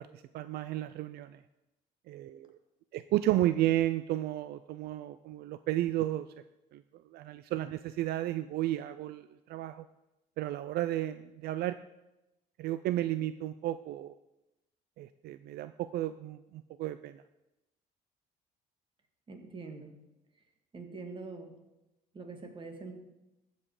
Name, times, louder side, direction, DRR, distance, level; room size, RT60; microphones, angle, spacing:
voice 1, 0.0-1.4 2.1-2.6 2.9-6.3 6.7-9.8 10.4-11.8 12.6-14.2 15.0-17.2, right 14 dB, 70° right, 13 dB, 0.4 m, -33 dB
voice 2, 19.3-19.9 20.7-21.5 22.1-22.9, right 4 dB, 30° right, 5 dB, 1.7 m, -44 dB
14.5 x 5.3 x 4.9 m, 0.95 s
cardioid pair, 110°, 17 cm